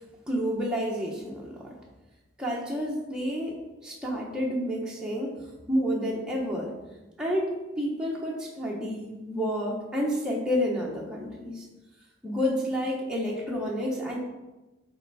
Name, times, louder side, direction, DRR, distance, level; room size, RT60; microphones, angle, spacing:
voice 1, 0.3-1.8 2.4-5.3 5.7-6.7 7.2-7.5 7.8-11.7 12.2-14.2, equal, 5° right, -4 dB, 1.0 m, -30 dB
8.0 x 4.4 x 4.1 m, 1.1 s
head